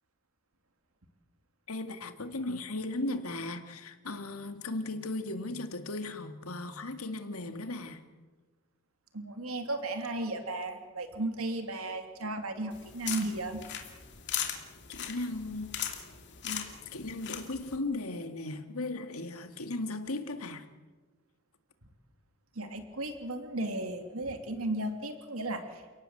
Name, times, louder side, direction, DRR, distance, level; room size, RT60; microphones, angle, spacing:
voice 1, 1.7-8.0 14.9-15.8 16.4-20.7, left 2 dB, 90° left, 2.1 m, -37 dB
voice 2, 9.1-13.6 22.6-25.6, right 2 dB, 80° right, 2.8 m, -35 dB
sound 1, 12.7-17.8, left 9 dB, 55° left, 2.8 m, -39 dB
30.0 x 17.5 x 8.0 m
head